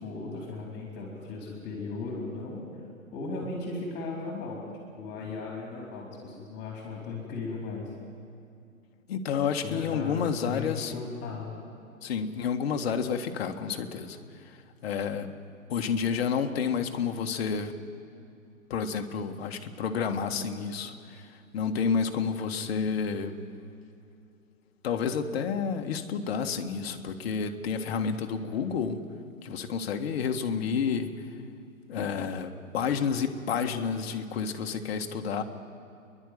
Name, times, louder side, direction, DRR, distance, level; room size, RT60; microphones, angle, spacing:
voice 1, 0.0-2.6 3.1-4.6 5.0-7.8 9.6-11.6, left 3 dB, 25° left, -1 dB, 4.2 m, -37 dB
voice 2, 9.1-10.9 12.0-14.2 14.4-14.6 14.8-15.3 15.7-17.7 18.7-23.3 24.8-29.0 29.4-31.1 31.9-35.4, left 6 dB, 45° left, 5 dB, 1.7 m, -30 dB
30.0 x 11.5 x 9.5 m, 2.6 s
figure-of-eight pair, 120°, 41 cm